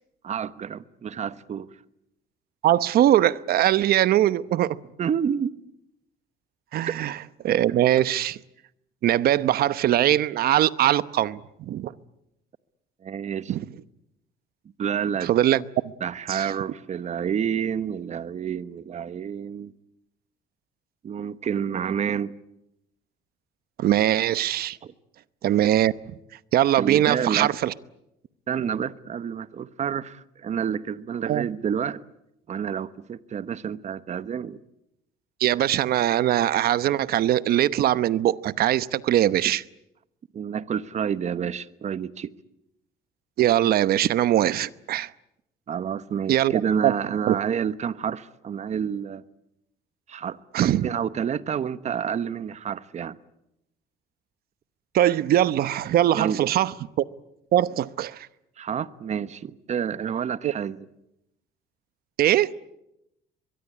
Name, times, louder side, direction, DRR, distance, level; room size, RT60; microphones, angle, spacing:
voice 1, 0.2-1.7 5.0-5.5 6.8-7.0 13.0-13.5 14.8-15.3 16.0-19.7 21.0-22.3 24.8-24.9 26.8-27.5 28.5-32.0 32.5-34.6 40.3-42.3 45.7-49.2 50.1-53.2 56.1-56.4 58.6-60.9, right 8 dB, 45° right, 1.1 m, -29 dB
voice 2, 2.6-4.8 6.7-7.1 7.4-8.4 9.0-11.9 13.5-13.6 15.2-15.6 16.3-16.5 23.8-24.8 25.4-25.9 26.5-27.7 31.3-31.5 35.4-39.6 43.4-45.1 46.3-46.5 46.8-46.9 47.3-47.4 50.5-50.9 54.9-56.7 57.5-58.3 60.4-60.5 62.2-62.5, right 12 dB, 65° right, 1.0 m, -21 dB
23.5 x 22.5 x 9.7 m
cardioid pair, 110°, 17 cm